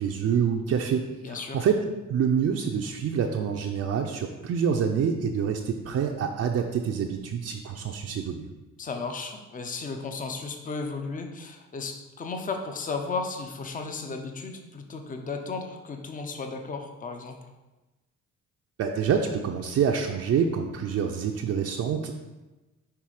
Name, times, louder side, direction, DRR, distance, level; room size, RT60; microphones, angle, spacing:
voice 1, 0.0-1.8 2.1-8.5 18.8-22.2, right 7 dB, 55° right, 2 dB, 0.5 m, -27 dB
voice 2, 1.2-1.6 8.8-17.3, left 4 dB, 25° left, 4 dB, 0.7 m, -34 dB
5.8 x 3.3 x 4.8 m, 1.1 s
cardioid pair, 90°, 30 cm